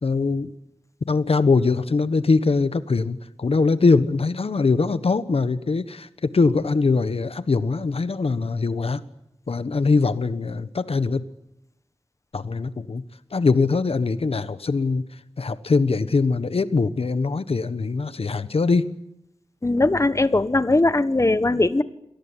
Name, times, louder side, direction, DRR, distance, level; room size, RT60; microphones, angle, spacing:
voice 1, 0.0-0.5 1.1-9.0 9.5-11.2 12.3-13.0 13.3-15.0 15.4-19.0, left 4 dB, 70° left, 13 dB, 1.3 m, -22 dB
voice 2, 19.6-21.8, left 2 dB, 30° left, 13 dB, 1.3 m, -20 dB
27.0 x 18.5 x 9.9 m, 0.83 s
wide cardioid pair, 70°, 10 cm